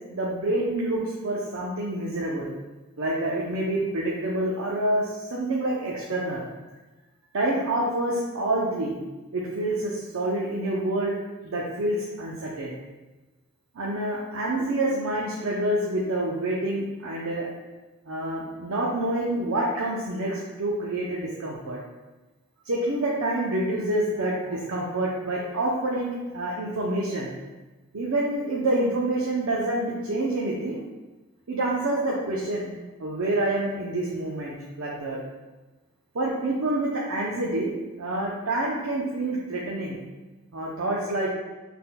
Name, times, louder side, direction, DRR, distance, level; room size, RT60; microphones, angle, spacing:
voice 1, 0.1-2.5 3.0-6.5 7.3-9.0 9.3-11.2 11.4-12.8 13.7-17.5 18.1-21.8 22.6-27.3 27.9-30.8 31.5-32.7 33.0-35.2 36.1-40.0 40.5-41.3, right 1 dB, 70° right, -4 dB, 0.7 m, -27 dB
5.9 x 3.7 x 2.2 m, 1.2 s
head